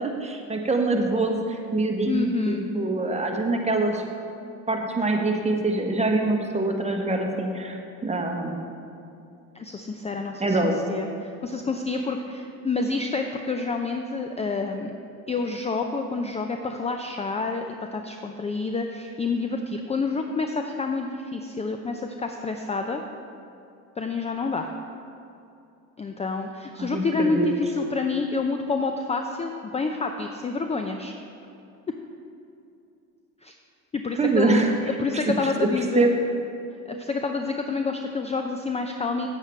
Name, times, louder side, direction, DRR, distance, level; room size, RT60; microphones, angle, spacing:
voice 1, 0.0-4.0 4.7-8.7 10.4-10.7 26.8-27.5 34.2-34.7 35.6-35.7 35.9-36.1, right 2 dB, 15° right, 2 dB, 1.3 m, -24 dB
voice 2, 2.1-2.6 9.5-14.9 15.3-17.6 17.9-23.0 24.0-24.7 26.0-31.1 33.4-33.5 33.9-36.1 36.9-39.3, left 4 dB, 15° left, 5 dB, 0.5 m, -28 dB
8.7 x 8.1 x 4.5 m, 2.7 s
hypercardioid pair, 75°, 41 cm